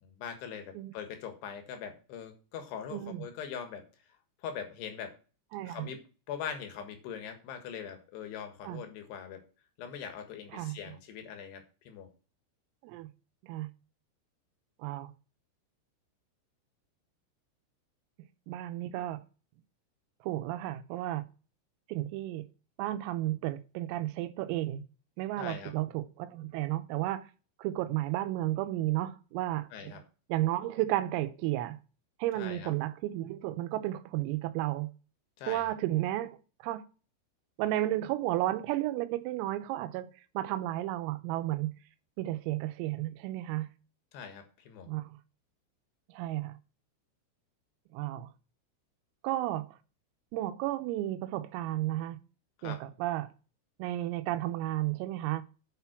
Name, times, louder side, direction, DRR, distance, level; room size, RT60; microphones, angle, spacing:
voice 1, 0.0-3.8 4.4-5.1 5.6-9.4 9.8-12.1 25.4-25.7 29.7-30.0 32.3-32.7 35.4-35.7 44.1-44.9 52.6-52.8, left 7 dB, 65° left, 3.2 m, -42 dB
voice 2, 2.9-3.2 5.5-5.9 8.7-8.8 10.5-11.0 12.8-13.1 13.4-13.7 14.8-15.1 18.5-19.2 20.2-21.2 21.9-22.5 22.8-24.8 25.2-27.3 27.6-30.0 30.3-31.8 32.2-34.9 35.5-36.4 36.6-36.8 37.6-40.1 40.4-41.7 42.2-43.7 44.9-45.1 46.2-46.5 47.9-48.3 49.2-49.7 50.3-52.2 52.6-53.3 53.8-55.4, right 15 dB, 90° right, 3.5 m, -33 dB
9.2 x 5.9 x 5.9 m
omnidirectional pair, 6.0 m